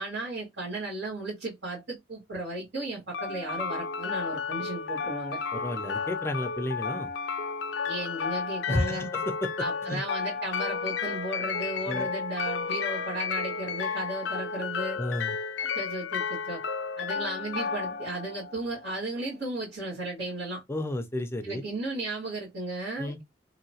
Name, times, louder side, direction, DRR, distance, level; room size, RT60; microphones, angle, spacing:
voice 1, 0.0-5.4 7.9-9.1 9.6-15.0 15.6-16.6 17.0-20.6 21.4-23.2, right 2 dB, 80° right, 1.5 m, -35 dB
sound 1, 3.1-19.1, left 5 dB, 85° left, 0.4 m, -32 dB
voice 2, 5.5-7.1 8.7-9.5 9.9-10.0 11.9-12.1 14.9-15.4 20.7-21.6 23.0-23.2, left 1 dB, 15° left, 0.4 m, -32 dB
2.9 x 2.8 x 2.7 m
head